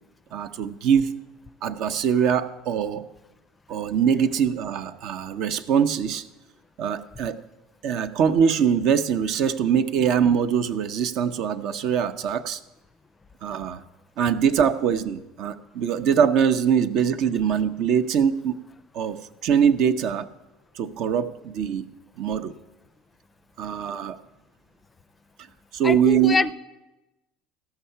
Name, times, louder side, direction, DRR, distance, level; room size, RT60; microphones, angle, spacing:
voice 1, 0.3-1.2 1.6-3.0 3.7-6.3 6.8-7.4 7.8-12.6 13.4-13.8 14.2-18.6 18.9-20.3 20.7-21.9 22.2-22.5 23.6-24.2 25.7-26.4, right 7 dB, 60° right, 10 dB, 0.5 m, -23 dB
voice 2, 25.8-26.5, left 4 dB, 25° left, 15 dB, 0.4 m, -24 dB
14.5 x 5.7 x 5.6 m, 1.0 s
hypercardioid pair, 70°, 0 cm